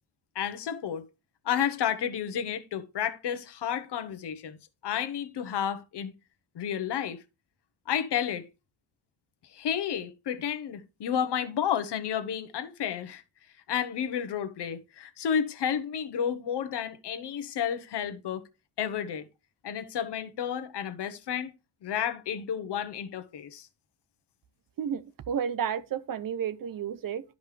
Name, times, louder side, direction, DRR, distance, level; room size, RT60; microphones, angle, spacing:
voice 1, 0.3-1.0 1.4-4.6 4.8-6.1 6.5-7.2 7.9-8.5 9.5-13.2 13.7-18.4 18.8-19.3 19.6-21.5 21.8-23.7, left 8 dB, 65° left, 1.1 m, -31 dB
voice 2, 24.8-27.2, right 8 dB, 50° right, 0.7 m, -32 dB
12.0 x 5.3 x 3.3 m
wide cardioid pair, 165°, 44 cm